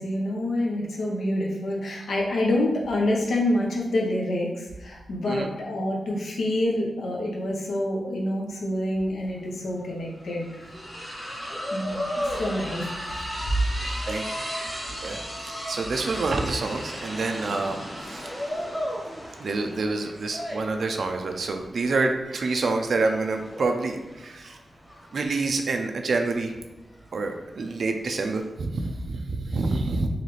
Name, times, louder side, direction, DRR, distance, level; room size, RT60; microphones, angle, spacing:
voice 1, 0.0-10.7 11.7-13.2, left 1 dB, 85° left, -1 dB, 0.8 m, -27 dB
sound 1, 9.3-9.4 9.6-28.5, equal, 10° left, 1.0 m, -35 dB
voice 2, 15.0-17.8 18.0-18.3 19.4-24.6 25.1-26.5 27.1-30.1, right 3 dB, 60° right, 4 dB, 0.4 m, -27 dB
3.9 x 3.2 x 3.1 m, 1.0 s
wide cardioid pair, 125°, 0 cm